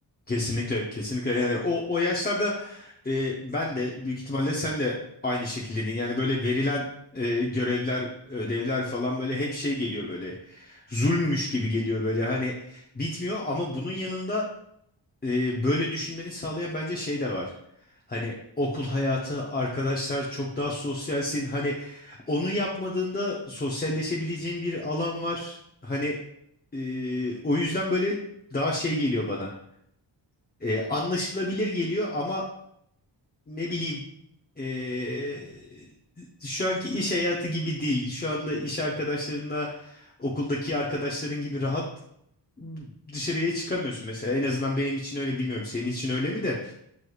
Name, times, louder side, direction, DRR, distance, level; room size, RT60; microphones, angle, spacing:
voice 1, 0.3-4.9 5.2-6.8 7.1-14.5 15.2-17.5 18.1-25.6 25.8-26.2 26.7-28.2 28.5-29.5 30.6-32.4 33.5-34.0 34.6-35.9 36.2-41.8 42.6-46.7, left 2 dB, 20° left, -3 dB, 0.5 m, -29 dB
6.1 x 3.2 x 2.3 m, 0.76 s
wide cardioid pair, 95°, 47 cm